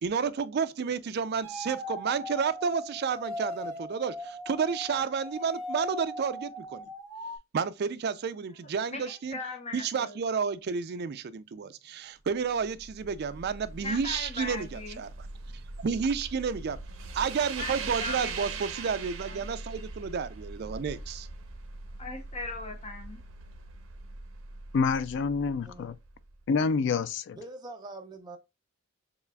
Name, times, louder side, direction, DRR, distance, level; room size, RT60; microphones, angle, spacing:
voice 1, 0.0-6.9 7.5-9.4 9.7-15.1 15.5-16.8 17.1-21.3, right 6 dB, 50° right, 0.4 m, -31 dB
sound 1, 1.4-7.4, left 1 dB, 10° left, 1.5 m, -39 dB
voice 2, 8.6-10.2 13.8-15.0 17.6-18.5 18.7-18.9 19.2-19.5 22.0-23.2, left 3 dB, 30° left, 0.9 m, -39 dB
sound 2, 12.4-26.5, right 4 dB, 75° right, 0.7 m, -41 dB
voice 3, 24.7-25.9 26.5-27.4, left 5 dB, 60° left, 0.3 m, -27 dB
voice 4, 27.4-28.4, right 2 dB, 20° right, 0.7 m, -43 dB
6.8 x 2.4 x 2.3 m
head